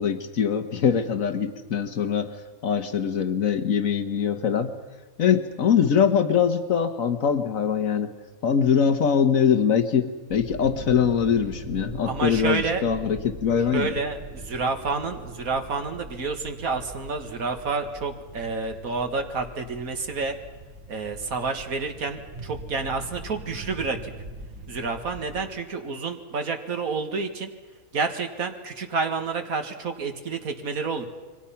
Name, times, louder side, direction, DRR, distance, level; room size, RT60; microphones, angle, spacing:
voice 1, 0.0-2.3 2.6-4.7 5.2-8.1 8.4-14.0, left 7 dB, 70° left, 9 dB, 1.6 m, -23 dB
sound 1, 10.3-25.4, right 2 dB, 70° right, 4.3 m, -41 dB
voice 2, 12.1-12.8 13.7-20.4 20.9-24.1 24.7-27.5 27.9-31.1, right 4 dB, 85° right, 5 dB, 2.1 m, -29 dB
28.5 x 23.5 x 5.8 m, 1.3 s
omnidirectional pair, 1.5 m